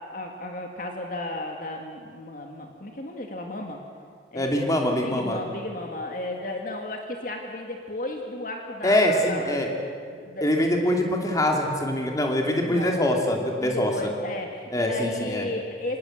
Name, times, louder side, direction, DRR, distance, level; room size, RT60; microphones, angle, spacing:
voice 1, 0.0-3.8 4.3-9.6 10.1-10.6 12.7-13.0 13.6-16.0, left 2 dB, 45° left, 2 dB, 2.0 m, -34 dB
voice 2, 4.3-5.4 8.8-9.7 10.4-14.1 14.7-15.5, left 1 dB, 20° left, 1 dB, 2.8 m, -24 dB
26.0 x 19.5 x 7.9 m, 2.1 s
head